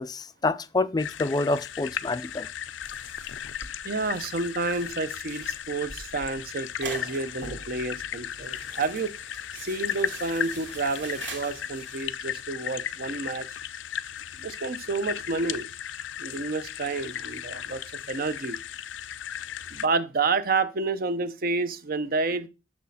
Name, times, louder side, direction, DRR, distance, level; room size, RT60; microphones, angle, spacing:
voice 1, 0.0-2.5, left 2 dB, 20° left, 0.4 m, -27 dB
sound 1, 1.0-19.9, left 9 dB, 85° left, 0.4 m, -36 dB
sound 2, 2.8-12.1, right 3 dB, 85° right, 2.2 m, -44 dB
voice 2, 3.8-9.1 9.5-13.5 14.4-15.7 16.2-17.8 18.1-18.6 19.7-22.5, right 3 dB, 55° right, 0.7 m, -29 dB
6.3 x 6.1 x 4.1 m
head